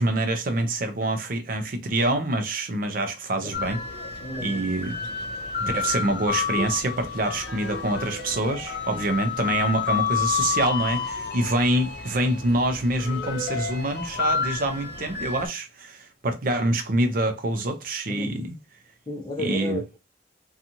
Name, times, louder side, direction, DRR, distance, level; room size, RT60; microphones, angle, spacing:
voice 1, 0.0-3.8 4.4-5.0 5.6-18.5 19.4-19.8, right 1 dB, 50° right, 0.5 m, -26 dB
sound 1, 3.5-15.5, left 6 dB, 65° left, 1.1 m, -30 dB
voice 2, 4.2-4.6 6.6-6.7 8.9-9.0 18.1-18.3 19.1-20.0, left 1 dB, 25° left, 0.6 m, -32 dB
2.6 x 2.4 x 2.8 m
head